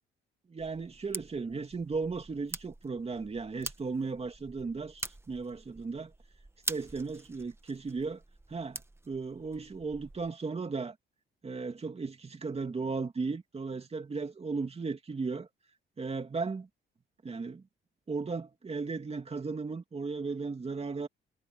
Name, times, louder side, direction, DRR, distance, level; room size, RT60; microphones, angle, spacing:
voice 1, 0.5-6.1 6.7-8.2 8.5-10.9 11.4-15.5 16.0-16.7 17.2-17.6 18.1-21.1, right 4 dB, 30° right, 2.9 m, -36 dB
sound 1, 0.6-10.3, right 2 dB, 10° right, 1.5 m, -45 dB
cardioid pair, 90°, 20 cm